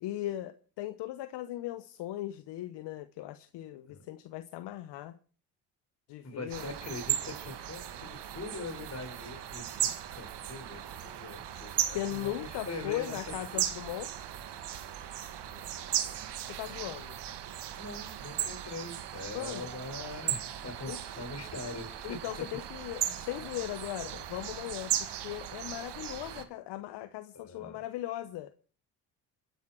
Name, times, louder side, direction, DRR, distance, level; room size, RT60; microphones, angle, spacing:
voice 1, 0.0-5.2 6.1-6.7 11.9-14.1 16.5-17.2 19.3-19.7 20.9-21.0 22.0-28.5, left 14 dB, 70° left, 0.9 m, -38 dB
voice 2, 6.2-13.6 15.4-16.2 17.7-22.2 27.3-27.8, left 2 dB, 35° left, 5.5 m, -43 dB
sound 1, 6.5-26.5, right 11 dB, 70° right, 1.7 m, -37 dB
28.0 x 10.5 x 4.5 m
supercardioid pair, 60°, 42 cm